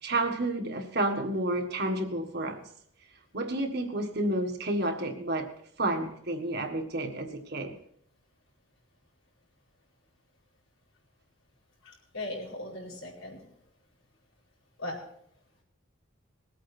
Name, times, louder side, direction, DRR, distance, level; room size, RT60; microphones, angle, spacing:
voice 1, 0.0-2.6 3.3-5.5 5.8-7.7, right 1 dB, 50° right, 4 dB, 1.7 m, -30 dB
voice 2, 11.8-13.4 14.8-15.0, left 1 dB, 85° left, -2 dB, 4.8 m, -38 dB
20.5 x 8.7 x 4.4 m, 0.69 s
head